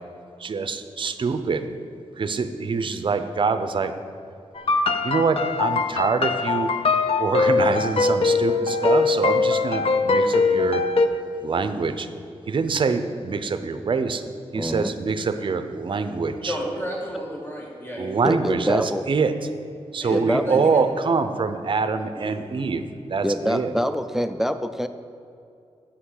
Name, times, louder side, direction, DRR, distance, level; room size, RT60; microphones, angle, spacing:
voice 1, 0.4-1.7 2.2-3.9 5.0-6.7 7.2-10.8 11.4-12.1 12.5-14.2 14.5-16.6 18.0-19.3 19.9-22.8 23.1-23.7, right 4 dB, 50° right, 9 dB, 0.6 m, -25 dB
sound 1, 4.6-11.1, left 4 dB, 60° left, 0.5 m, -21 dB
voice 2, 14.5-14.9 18.2-19.0 20.1-20.7 23.2-24.9, equal, 5° right, 10 dB, 0.3 m, -25 dB
voice 3, 16.5-18.2 20.0-20.7 22.2-22.7, equal, 20° left, -3 dB, 1.8 m, -33 dB
8.4 x 5.8 x 6.5 m, 2.5 s
wide cardioid pair, 110°, 11 cm